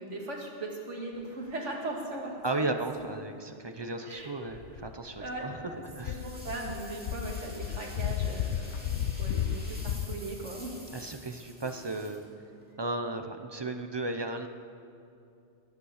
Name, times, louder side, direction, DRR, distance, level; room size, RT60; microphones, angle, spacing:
voice 1, 0.0-2.7 3.0-3.1 3.8-4.4 5.2-5.5 6.0-10.8, right 2 dB, 90° right, -1 dB, 2.5 m, -39 dB
voice 2, 2.4-6.2 10.9-12.2 12.8-14.5, right 2 dB, 25° right, 6 dB, 0.7 m, -35 dB
Front door open and close, 4.5-5.6 6.0-10.2, left 9 dB, 75° left, 0.8 m, -33 dB
sound 1, 6.0-12.7, equal, 10° right, 2.6 m, -49 dB
19.0 x 8.3 x 6.6 m, 2.5 s
omnidirectional pair, 1.2 m